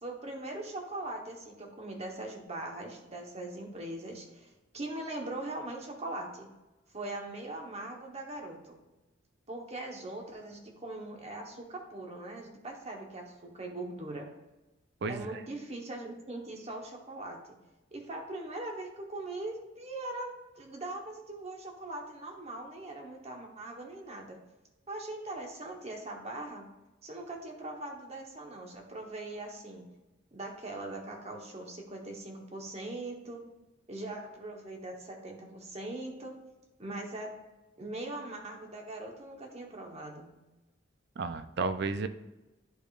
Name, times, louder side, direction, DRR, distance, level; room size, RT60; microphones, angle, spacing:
voice 1, 0.0-6.5 6.9-8.8 9.5-14.3 15.1-17.4 17.9-24.4 24.9-26.7 27.0-29.9 30.3-33.4 33.9-36.4 36.8-37.3 37.8-40.3, right 2 dB, 30° right, 1 dB, 1.1 m, -41 dB
voice 2, 41.2-42.1, right 4 dB, 55° right, 11 dB, 0.4 m, -32 dB
11.0 x 5.0 x 2.4 m, 1.0 s
head